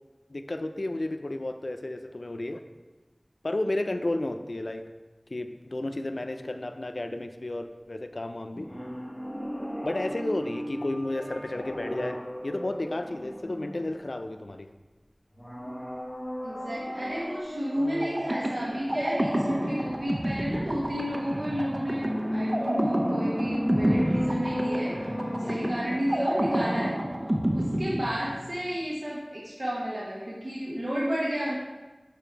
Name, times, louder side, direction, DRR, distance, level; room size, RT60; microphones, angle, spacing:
voice 1, 0.3-2.6 3.4-4.8 5.3-8.7 9.8-12.2 12.4-14.7 25.4-25.7, left 1 dB, 80° left, 7 dB, 0.4 m, -32 dB
sound 1, 8.5-14.3 15.3-18.4 21.1-26.3 26.6-26.7, equal, 15° left, 1.4 m, -34 dB
voice 2, 16.4-25.1 25.5-26.9 27.5-31.5, equal, 60° right, -6 dB, 1.1 m, -32 dB
sound 2, 18.0-28.7, right 1 dB, 45° right, 0.7 m, -29 dB
7.0 x 4.8 x 4.5 m, 1.2 s
wide cardioid pair, 40°, 0 cm